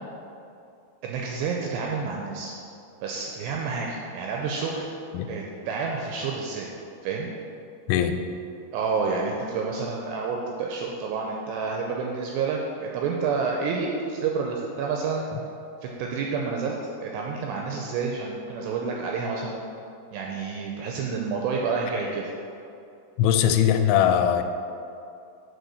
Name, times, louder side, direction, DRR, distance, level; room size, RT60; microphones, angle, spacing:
voice 1, 1.0-2.6 3.0-4.9 5.3-6.7 7.0-7.3 8.7-15.2 15.8-19.6 20.1-22.3, right 5 dB, 85° right, 0 dB, 2.5 m, -29 dB
voice 2, 23.2-24.4, left 9 dB, 85° left, 7 dB, 2.8 m, -20 dB
8.1 x 4.3 x 6.4 m, 2.6 s
omnidirectional pair, 5.4 m